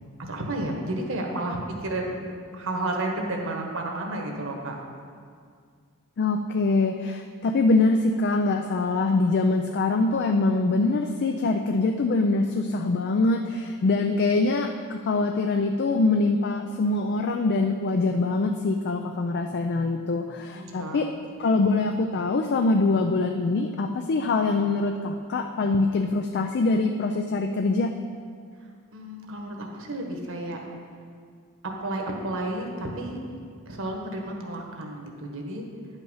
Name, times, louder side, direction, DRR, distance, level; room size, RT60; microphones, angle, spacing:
voice 1, 0.2-4.7 20.5-21.0 28.9-30.6 31.8-33.2 33.7-35.6, right 1 dB, 65° right, 1 dB, 1.4 m, -32 dB
voice 2, 6.2-21.1 21.4-27.9, left 3 dB, 50° left, 5 dB, 0.4 m, -24 dB
10.0 x 5.7 x 5.6 m, 2.1 s
head